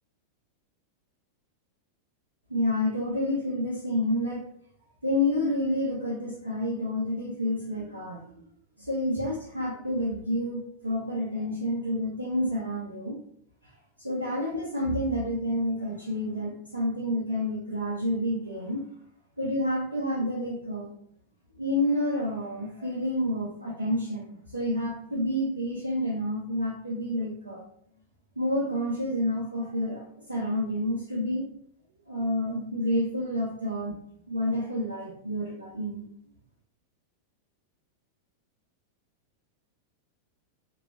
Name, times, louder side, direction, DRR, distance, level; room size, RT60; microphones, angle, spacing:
voice 1, 2.5-4.4 5.0-8.4 8.8-13.2 14.0-18.8 19.4-20.9 21.6-27.7 28.4-31.5 32.1-33.9 34.3-36.1, left 1 dB, 80° right, -5 dB, 0.5 m, -29 dB
2.8 x 2.2 x 3.0 m, 0.66 s
figure-of-eight pair, 90°, 0 cm